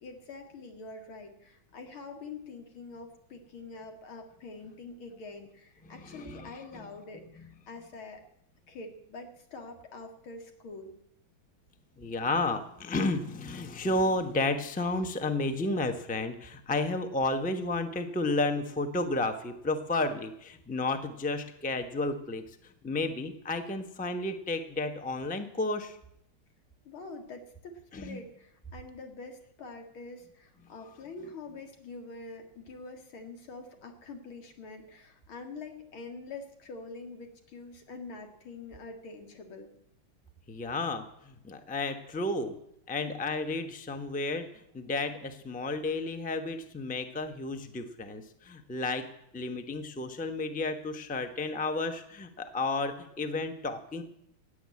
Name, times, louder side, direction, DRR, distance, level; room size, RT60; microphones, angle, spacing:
voice 1, 0.0-8.2 8.7-10.9 26.8-39.7, left 3 dB, 90° left, 4 dB, 2.9 m, -45 dB
voice 2, 5.8-6.9 12.0-22.4 22.8-26.0 27.9-28.2 40.5-42.5 42.9-44.5 44.7-49.1 49.3-54.0, left 2 dB, 5° left, 8 dB, 0.6 m, -32 dB
16.5 x 8.1 x 9.5 m, 0.76 s
omnidirectional pair, 2.2 m